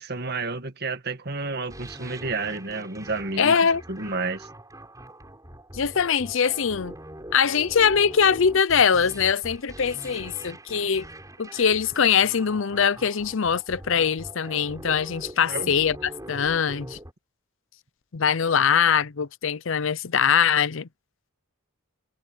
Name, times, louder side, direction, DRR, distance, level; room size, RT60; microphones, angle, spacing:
voice 1, 0.0-3.5 3.9-4.5 15.5-15.7, right 3 dB, 45° right, 1.8 m, -30 dB
sound 1, 1.7-17.1, right 1 dB, 15° right, 7.0 m, -42 dB
voice 2, 3.4-3.8 5.7-6.9 7.3-11.1 11.4-17.0 18.1-20.9, left 7 dB, 60° left, 0.6 m, -22 dB
head